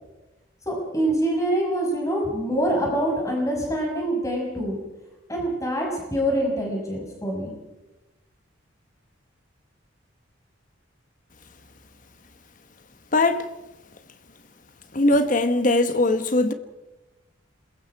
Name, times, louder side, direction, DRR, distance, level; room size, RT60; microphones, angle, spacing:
voice 1, 0.7-4.8 5.3-7.5, right 1 dB, 15° left, 5.9 m, -25 dB
voice 2, 13.1-13.5 14.9-16.5, left 2 dB, 40° left, 1.3 m, -20 dB
27.5 x 22.0 x 4.8 m
head